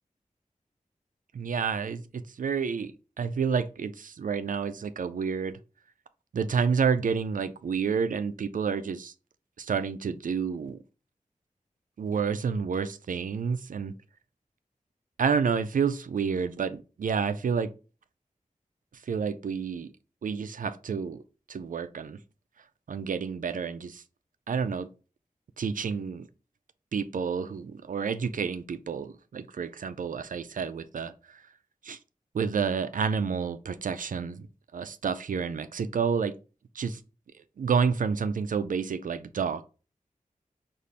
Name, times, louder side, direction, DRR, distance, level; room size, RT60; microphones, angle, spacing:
voice 1, 1.3-2.9 3.2-5.5 6.3-9.1 9.6-10.8 12.0-13.9 15.2-17.7 19.1-19.9 20.2-21.2 21.5-22.2 22.9-24.0 24.5-24.9 25.6-26.3 26.9-31.4 31.8-32.0 32.3-34.5 34.7-36.3 36.8-37.0 37.6-39.6, right 6 dB, 70° right, 0.4 m, -29 dB
5.3 x 2.5 x 3.2 m
wide cardioid pair, 65°, 14 cm